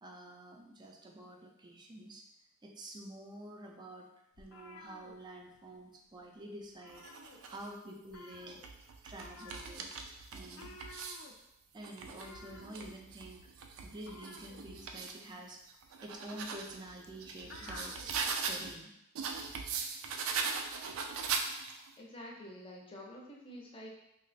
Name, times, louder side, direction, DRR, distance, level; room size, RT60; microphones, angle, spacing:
voice 1, 0.0-2.3 2.6-4.1 4.4-7.1 7.5-8.6 9.0-9.9 10.3-10.7 11.7-13.5 13.8-15.6 16.0-18.2 18.5-18.9, right 1 dB, 20° right, 1 dB, 0.4 m, -48 dB
sound 1, 4.3-5.9 6.1-6.4 6.6-7.7 8.1-18.2, left 3 dB, 70° left, 0.4 m, -54 dB
sound 2, 6.9-7.7 8.4-11.3 11.8-15.2 15.7-18.7 19.1-21.9, right 5 dB, 90° right, 0.4 m, -40 dB
voice 2, 22.0-23.9, left 1 dB, 25° left, -1 dB, 0.6 m, -48 dB
3.0 x 2.1 x 4.0 m, 0.84 s
head